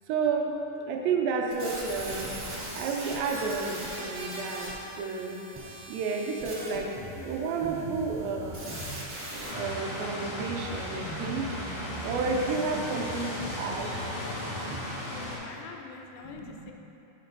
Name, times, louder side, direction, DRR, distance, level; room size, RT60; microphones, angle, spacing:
voice 1, 0.1-2.3 2.7-4.7 5.0-5.4 5.9-6.9 7.2-8.7 9.4-11.5 12.0-13.9 14.2-14.6 16.2-16.7, right 4 dB, 85° right, 1 dB, 2.4 m, -31 dB
sound 1, 1.5-9.5, right 1 dB, 45° right, 1.3 m, -40 dB
Drum kit, 6.7-14.8, equal, 65° right, 1.1 m, -42 dB
voice 2, 7.2-7.5 8.0-8.2 12.9-13.3 15.1-16.7, left 5 dB, 80° left, 2 dB, 2.3 m, -45 dB
sound 2, 9.4-15.4, left 1 dB, 65° left, 1.3 m, -36 dB
8.0 x 6.6 x 2.6 m, 2.9 s
omnidirectional pair, 4.2 m